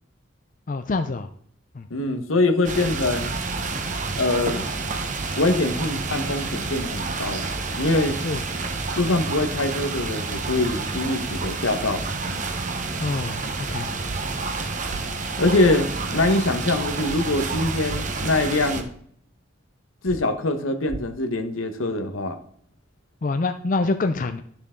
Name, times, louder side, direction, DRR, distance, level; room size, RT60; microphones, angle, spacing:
voice 1, 0.7-1.3 1.8-1.9 8.2-8.4 13.0-13.9 23.2-24.4, left 3 dB, 40° left, 8 dB, 0.4 m, -26 dB
voice 2, 1.9-3.4 4.2-4.7 5.4-7.4 7.7-8.2 8.9-12.1 15.4-18.9 20.0-22.4, left 2 dB, 85° left, 7 dB, 1.2 m, -23 dB
sound 1, 2.6-18.8, right 3 dB, 40° right, 1.0 m, -29 dB
sound 2, 14.1-14.2 14.9-15.0 17.1-17.2 17.9-18.0 20.1-20.2 20.9-21.0, right 4 dB, 90° right, 0.5 m, -33 dB
11.5 x 6.9 x 3.7 m, 0.64 s
head